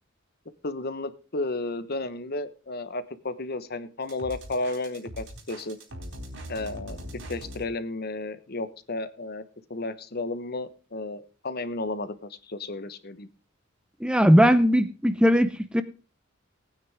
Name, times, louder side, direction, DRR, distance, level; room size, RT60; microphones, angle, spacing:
voice 1, 0.6-5.8 6.5-7.0 7.3-9.4 9.7-13.3, left 2 dB, 50° left, 13 dB, 1.1 m, -33 dB
sound 1, 4.1-7.6, equal, 75° right, 4.0 m, -40 dB
voice 2, 14.0-15.8, equal, 5° right, 12 dB, 0.7 m, -19 dB
18.5 x 9.5 x 3.5 m, 0.34 s
head